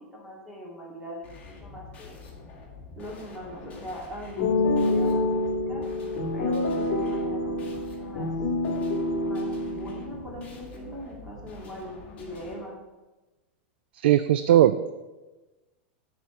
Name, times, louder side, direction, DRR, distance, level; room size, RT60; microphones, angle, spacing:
voice 1, 0.1-2.2 3.0-5.8 6.3-8.3 9.2-12.7, equal, 10° right, -4 dB, 2.4 m, -41 dB
sound 1, 1.2-12.5, left 4 dB, 20° left, 2.0 m, -46 dB
sound 2, 4.4-10.4, left 2 dB, 45° left, 1.4 m, -27 dB
voice 2, 13.9-14.9, right 11 dB, 75° right, 12 dB, 0.4 m, -19 dB
9.6 x 4.5 x 6.8 m, 1.2 s
supercardioid pair, 160°, 6 cm